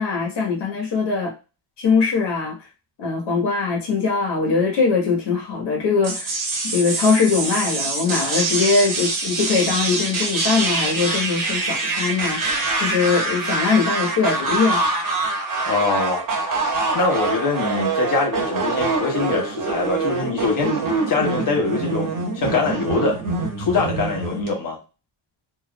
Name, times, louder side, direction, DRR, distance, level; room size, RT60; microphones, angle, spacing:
voice 1, 0.0-1.3 1.8-2.6 3.0-6.3 6.6-14.8, left 4 dB, 60° left, 1.4 m, -21 dB
sound 1, 6.0-24.5, right 3 dB, 45° right, 1.4 m, -24 dB
voice 2, 15.7-16.3 16.9-23.2 23.6-24.8, left 4 dB, 45° left, 1.2 m, -23 dB
3.7 x 2.9 x 2.3 m
cardioid pair, 140°, 48 cm